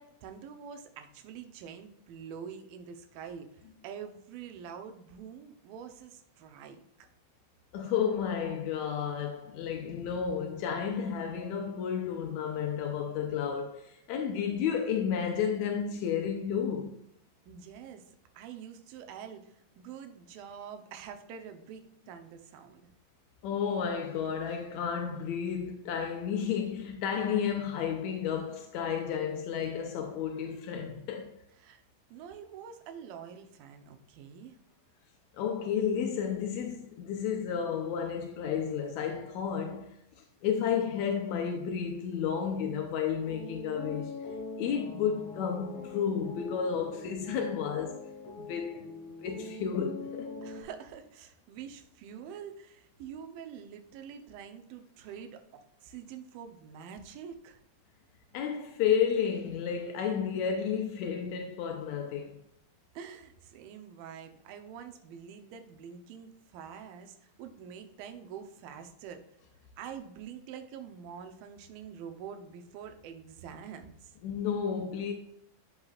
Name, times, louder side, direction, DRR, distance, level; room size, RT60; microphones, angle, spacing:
voice 1, 0.0-7.1 17.5-18.1 18.3-22.9 31.6-31.8 32.1-34.6 50.4-57.6 62.9-69.2 69.8-74.1, right 7 dB, 80° right, 2.6 m, -46 dB
voice 2, 7.7-17.0 23.4-31.3 35.3-40.0 40.4-44.1 44.6-48.0 48.4-48.9 49.2-50.3 58.3-62.4 74.2-75.1, left 7 dB, 80° left, 1.6 m, -32 dB
sound 1, 43.2-50.6, left 3 dB, 65° left, 2.7 m, -43 dB
12.0 x 5.9 x 2.4 m
omnidirectional pair, 4.2 m